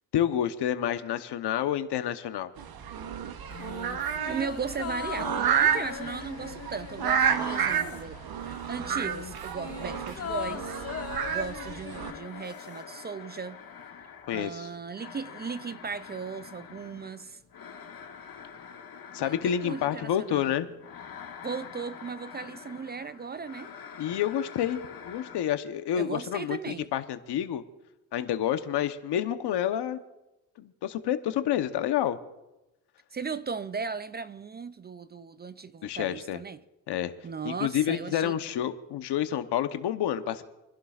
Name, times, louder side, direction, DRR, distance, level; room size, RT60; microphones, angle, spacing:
voice 1, 0.1-2.5 14.3-14.7 19.1-20.7 24.0-24.8 25.0-27.6 28.1-30.0 30.6-32.2 35.8-36.4 36.9-37.1 37.4-40.4, left 10 dB, 80° left, 1.0 m, -29 dB
sound 1, 2.6-12.1, right 8 dB, 65° right, 1.0 m, -30 dB
sound 2, 3.5-8.3 8.5-12.9 13.1-13.2, left 8 dB, 40° left, 0.6 m, -40 dB
voice 2, 4.3-8.2 8.7-10.8 11.3-13.6 14.3-17.4 19.2-20.5 21.4-23.7 25.9-26.9 33.1-36.6 37.2-38.4, right 5 dB, 25° right, 0.4 m, -37 dB
sound 3, 5.8-7.0 7.3-25.4, left 7 dB, 60° left, 2.1 m, -47 dB
28.5 x 11.5 x 2.4 m
cardioid pair, 100°, 40 cm